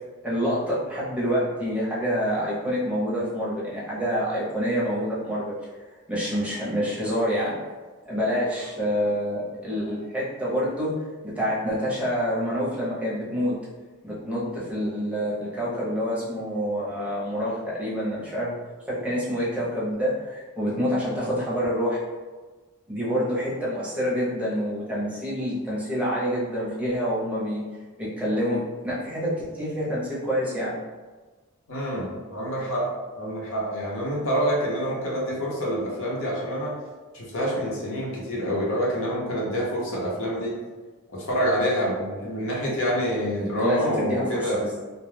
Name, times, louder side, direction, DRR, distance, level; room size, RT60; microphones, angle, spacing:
voice 1, 0.2-5.5 5.9-7.5 8.0-10.9 11.2-13.5 14.0-18.5 18.9-22.0 22.9-27.6 28.0-30.7 43.4-44.8, equal, 5° right, -7 dB, 0.7 m, -27 dB
voice 2, 31.7-36.7 37.1-40.6 41.1-44.6, equal, 65° left, -4 dB, 0.9 m, -27 dB
2.3 x 2.2 x 3.3 m, 1.3 s
head